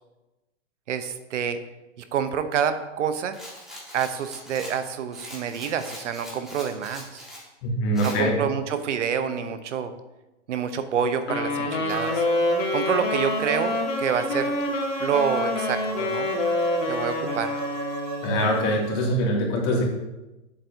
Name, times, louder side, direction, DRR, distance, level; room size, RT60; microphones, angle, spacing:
voice 1, 0.9-1.6 2.0-3.4 3.9-7.3 8.0-9.9 10.5-12.3 12.7-14.6 15.0-16.3 16.9-17.5, right 7 dB, 75° right, 10 dB, 0.9 m, -27 dB
Rattle, 3.3-7.5 7.9-8.2, equal, ahead, 1.8 m, -42 dB
voice 2, 7.6-8.4 18.2-19.8, equal, 40° left, -2 dB, 2.5 m, -23 dB
Wind instrument woodwind instrument, 11.2-18.5, left 2 dB, 90° left, 1.9 m, -27 dB
sound 1, 11.9-19.1, right 3 dB, 40° right, 1.2 m, -34 dB
8.0 x 7.4 x 2.8 m, 1.0 s
hypercardioid pair, 135°, 37 cm